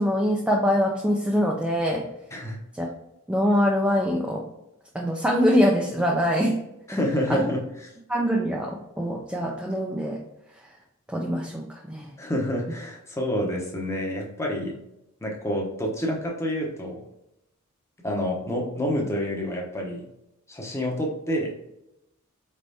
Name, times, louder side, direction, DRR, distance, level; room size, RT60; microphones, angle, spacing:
voice 1, 0.0-2.1 2.8-2.9 3.3-4.5 4.9-6.6 6.9-7.0 7.3-7.5 8.1-10.2 11.1-12.1, equal, 5° right, -2 dB, 0.4 m, -24 dB
voice 2, 6.9-7.6 12.2-14.8 15.2-17.0 18.0-20.1 20.5-21.5, equal, 15° left, -1 dB, 0.8 m, -28 dB
4.2 x 3.4 x 2.7 m, 0.85 s
head